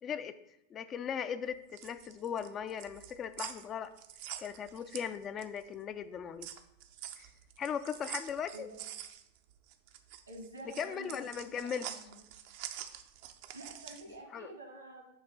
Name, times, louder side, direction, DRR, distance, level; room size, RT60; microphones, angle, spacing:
voice 1, 0.0-0.4 0.7-3.9 4.4-6.5 7.2-7.3 7.6-8.7 10.7-11.9 14.3-14.5, left 7 dB, 25° left, 12 dB, 0.3 m, -38 dB
sound 1, 1.5-5.7 6.0-14.1, right 11 dB, 50° right, 0.4 m, -46 dB
voice 2, 8.5-8.9 10.3-12.2 13.5-15.1, right 1 dB, 85° right, 0 dB, 1.7 m, -49 dB
7.2 x 2.8 x 5.3 m, 0.83 s
figure-of-eight pair, 90°, 0 cm